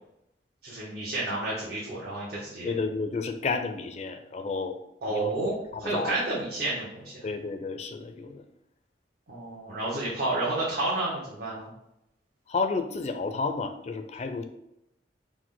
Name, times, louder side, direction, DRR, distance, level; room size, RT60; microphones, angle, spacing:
voice 1, 0.6-2.7 5.0-7.1 9.3-11.7, right 2 dB, 60° right, -7 dB, 1.0 m, -30 dB
voice 2, 2.6-4.8 5.1-5.3 5.7-6.2 7.2-8.4 12.5-14.5, left 4 dB, 40° left, 8 dB, 0.4 m, -31 dB
4.7 x 2.1 x 3.8 m, 0.83 s
head